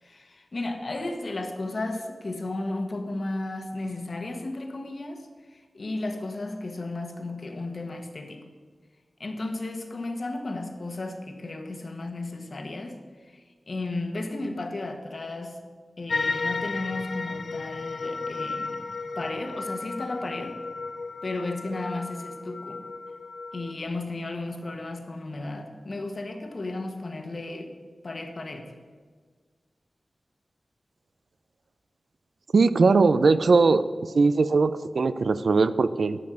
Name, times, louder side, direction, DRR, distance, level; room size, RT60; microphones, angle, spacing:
voice 1, 0.0-8.4 9.2-15.6 16.0-18.8 19.1-20.6 21.2-22.8 23.5-27.7 28.0-28.7, left 2 dB, 55° left, 5 dB, 1.3 m, -34 dB
sound 1, 16.1-23.7, left 3 dB, 80° left, 0.5 m, -33 dB
voice 2, 32.5-33.8 34.1-36.2, right 4 dB, 75° right, 13 dB, 0.4 m, -20 dB
12.0 x 5.5 x 7.9 m, 1.5 s
wide cardioid pair, 95°, 0 cm